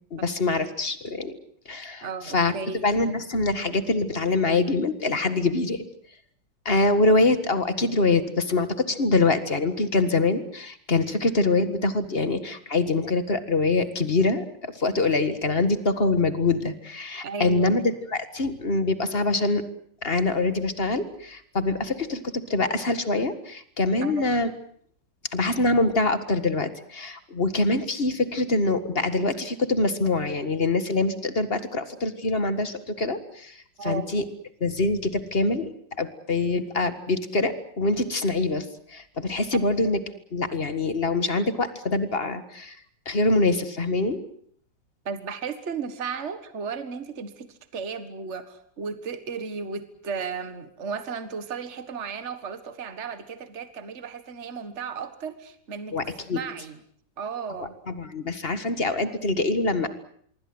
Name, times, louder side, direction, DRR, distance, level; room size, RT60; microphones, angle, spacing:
voice 1, 0.0-1.4 1.7-2.1 2.3-2.5 2.8-5.8 6.7-19.6 20.0-24.5 25.3-33.5 33.8-34.2 34.6-35.7 36.0-38.7 38.9-40.0 40.3-42.8 43.1-44.2 55.9-56.4 57.6-59.9, left 2 dB, 35° left, 11 dB, 1.9 m, -24 dB
voice 2, 2.0-2.8 17.2-17.7 24.0-24.4 33.8-34.1 45.1-56.8 57.2-57.8, right 5 dB, 40° right, 10 dB, 1.9 m, -34 dB
25.5 x 23.5 x 7.9 m, 0.63 s
omnidirectional pair, 1.9 m